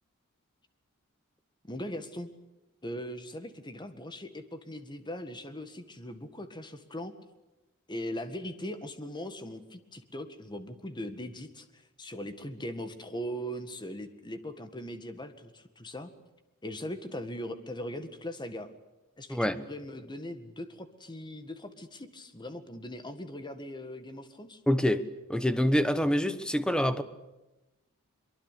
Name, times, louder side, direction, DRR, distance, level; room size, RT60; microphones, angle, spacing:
voice 1, 1.7-2.3 2.8-7.1 7.9-16.1 16.6-18.7 19.2-24.6, equal, 20° left, 1.8 m, -40 dB
voice 2, 24.7-25.0 25.3-27.0, equal, 5° left, 1.1 m, -26 dB
24.0 x 23.0 x 8.4 m
head